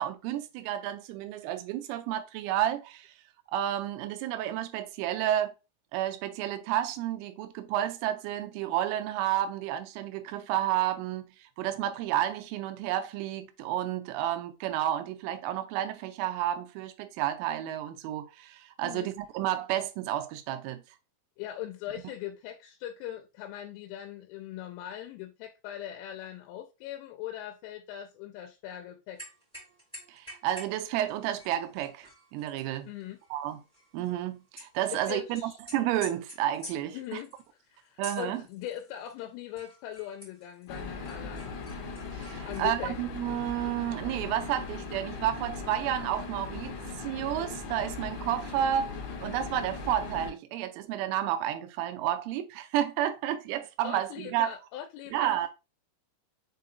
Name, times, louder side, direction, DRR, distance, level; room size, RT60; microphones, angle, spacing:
voice 1, 0.0-3.1 3.5-5.5 5.9-20.8 30.1-32.9 33.3-33.6 33.9-37.2 38.0-38.4 42.1-54.5 55.1-55.5, right 12 dB, 85° right, 3.1 m, -31 dB
voice 2, 21.4-29.2 32.9-33.2 34.9-35.6 36.9-37.3 37.6-41.6 42.4-43.0 53.8-55.5, left 11 dB, 90° left, 3.1 m, -40 dB
sound 1, 29.2-30.8 31.1-34.7 35.0-39.2 39.5-42.6, equal, 5° left, 0.8 m, -49 dB
sound 2, 40.7-50.3, left 4 dB, 65° left, 2.5 m, -39 dB
7.0 x 2.8 x 2.5 m
omnidirectional pair, 5.6 m